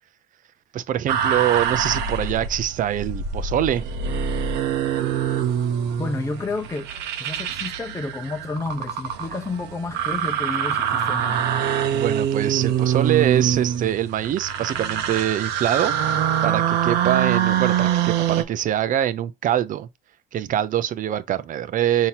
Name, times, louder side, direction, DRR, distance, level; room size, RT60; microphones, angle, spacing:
voice 1, 0.7-3.8 11.9-15.9 16.4-19.9 20.3-22.1, right 11 dB, 50° right, 0.5 m, -24 dB
sound 1, 1.1-18.4, right 8 dB, 85° right, 0.7 m, -24 dB
voice 2, 6.0-6.9 7.2-11.4, left 3 dB, 20° left, 0.7 m, -30 dB
5.7 x 2.8 x 2.8 m
cardioid pair, 110°, 17 cm